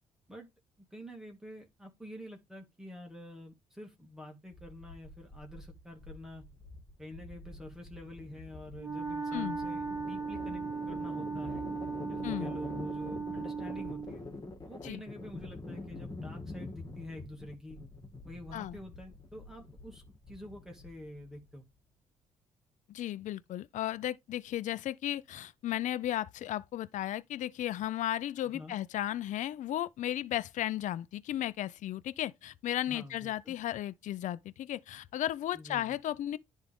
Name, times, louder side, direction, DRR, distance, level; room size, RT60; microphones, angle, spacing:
voice 1, 0.9-6.5 7.0-11.7 12.1-14.2 14.6-17.8 18.3-21.7 28.5-28.7 32.9-33.5 35.5-35.9, left 1 dB, 5° right, 2.2 m, -47 dB
sound 1, 4.5-21.5, left 2 dB, 30° left, 2.5 m, -46 dB
Wind instrument woodwind instrument, 8.8-14.2, right 5 dB, 20° right, 2.3 m, -37 dB
voice 2, 22.9-36.4, left 12 dB, 65° left, 0.4 m, -35 dB
10.5 x 3.5 x 3.6 m
cardioid pair, 80°, 14 cm